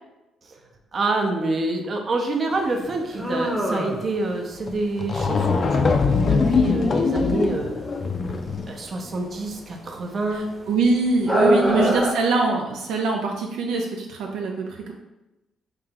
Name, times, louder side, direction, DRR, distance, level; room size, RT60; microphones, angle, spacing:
voice 1, 0.9-7.7 8.7-10.5 11.4-12.1, right 2 dB, 45° right, 3 dB, 0.6 m, -27 dB
sound 1, 2.5-12.1, equal, 5° right, 0.8 m, -28 dB
sound 2, 4.7-4.8 5.0-8.8, left 4 dB, 45° left, 0.4 m, -22 dB
voice 2, 10.7-14.9, right 3 dB, 85° right, 1 dB, 0.4 m, -23 dB
3.3 x 2.8 x 3.7 m, 0.99 s
cardioid pair, 90°, 0 cm